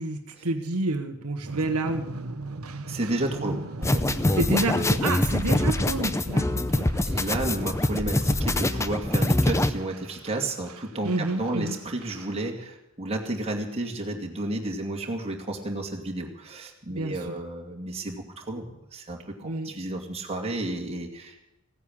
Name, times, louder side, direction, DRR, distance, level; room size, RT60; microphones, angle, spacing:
voice 1, 0.0-2.4 3.3-3.5 4.3-6.9 11.0-11.7 16.9-17.1 19.4-19.7, right 2 dB, 85° right, 5 dB, 1.3 m, -29 dB
sound 1, 1.4-12.5, right 2 dB, 65° right, 1.1 m, -41 dB
voice 2, 2.9-4.1 7.0-21.4, right 2 dB, 30° right, 0 dB, 2.5 m, -32 dB
sound 2, 3.8-9.7, left 1 dB, 15° left, 0.6 m, -24 dB
16.0 x 9.7 x 8.8 m, 0.90 s
head